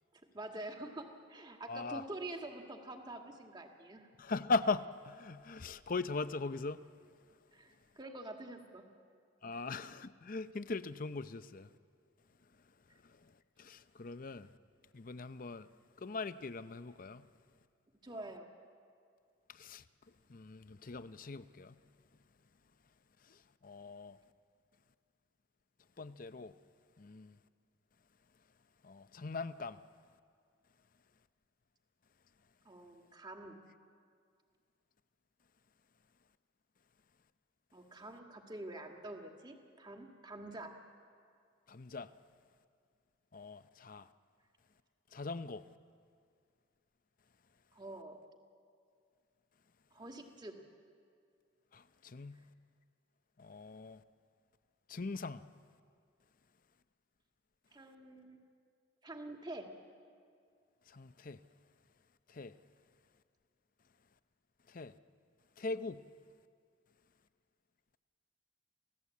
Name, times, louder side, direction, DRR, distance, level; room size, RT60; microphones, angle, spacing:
voice 1, 0.1-4.1 7.5-8.9 9.5-9.6 18.0-18.5 32.7-33.6 37.7-40.7 47.7-48.2 49.9-50.6 57.7-58.4 59.0-59.7, right 2 dB, 25° right, 2.0 m, -47 dB
voice 2, 1.7-2.0 4.2-6.9 9.4-11.7 12.5-14.5 14.9-15.7 16.0-17.3 19.5-21.8 23.2-24.2 26.0-26.5 27.0-27.4 28.8-29.8 41.7-42.1 43.3-44.1 45.1-45.7 51.7-52.4 53.4-54.0 54.9-55.5 60.9-61.4 62.3-62.6 64.7-65.0 65.6-66.1, left 3 dB, 45° left, 0.6 m, -40 dB
28.5 x 16.5 x 8.4 m
head